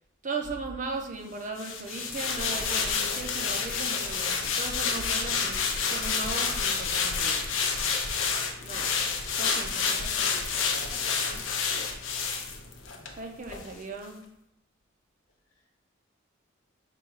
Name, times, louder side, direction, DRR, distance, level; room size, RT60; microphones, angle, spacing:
voice 1, 0.2-7.5 8.6-9.0 9.4-10.1 13.2-14.2, right 3 dB, 40° right, 3 dB, 0.5 m, -37 dB
sound 1, 1.6-13.1 13.5-13.6, left 5 dB, 70° left, 0.5 m, -29 dB
voice 2, 9.9-11.8, left 1 dB, 90° left, -2 dB, 1.0 m, -48 dB
4.5 x 2.3 x 4.6 m, 0.81 s
head